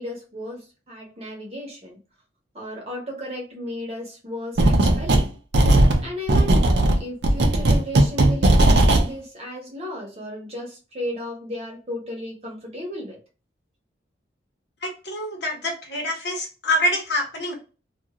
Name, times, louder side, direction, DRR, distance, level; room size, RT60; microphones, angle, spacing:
voice 1, 0.0-2.0 2.5-5.3 6.0-13.2, left 1 dB, 35° right, -1 dB, 0.9 m, -34 dB
sound 1, 4.6-5.3 5.5-9.1, right 1 dB, 65° right, 0.5 m, -17 dB
voice 2, 14.8-17.6, equal, 65° left, 0 dB, 1.0 m, -26 dB
2.5 x 2.4 x 2.8 m, 0.33 s
head